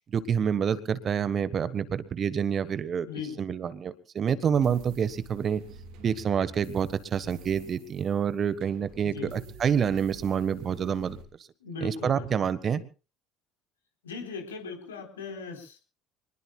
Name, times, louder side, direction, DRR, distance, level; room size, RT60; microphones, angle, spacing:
voice 1, 0.1-3.1 3.4-5.6 6.0-11.2 11.8-12.8, right 7 dB, 40° right, 15 dB, 1.4 m, -27 dB
voice 2, 3.1-3.4 9.0-9.4 11.6-12.5 14.0-15.8, left 5 dB, 75° left, 3 dB, 3.9 m, -39 dB
sound 1, 4.5-11.3, right 3 dB, 60° right, 3.6 m, -48 dB
26.0 x 20.0 x 2.4 m, 0.35 s
figure-of-eight pair, 60°, 0 cm